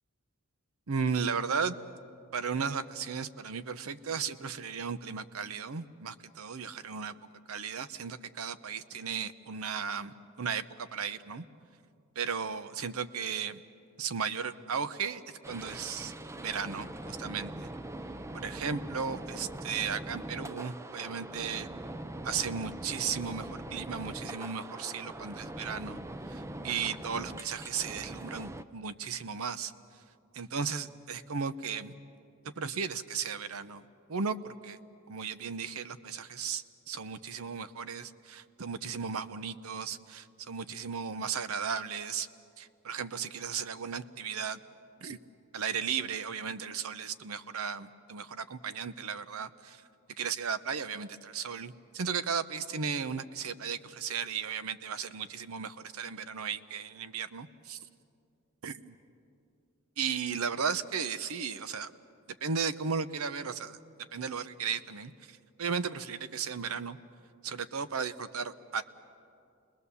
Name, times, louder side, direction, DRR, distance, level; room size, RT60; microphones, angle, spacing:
voice 1, 0.9-1.8 2.3-7.1 7.5-11.4 12.2-13.6 14.0-16.1 16.4-17.7 18.3-21.7 22.2-26.0 26.3-29.7 30.3-31.9 32.6-34.8 35.1-42.3 42.6-44.6 45.0-45.2 45.5-49.8 50.2-57.8 58.6-58.9 60.0-61.9 62.4-63.8 64.1-67.0 67.4-68.8, right 6 dB, 80° right, 13 dB, 0.7 m, -35 dB
sound 1, 15.4-28.6, right 1 dB, 15° right, 0.5 m, -42 dB
29.0 x 20.0 x 7.0 m, 2.5 s
head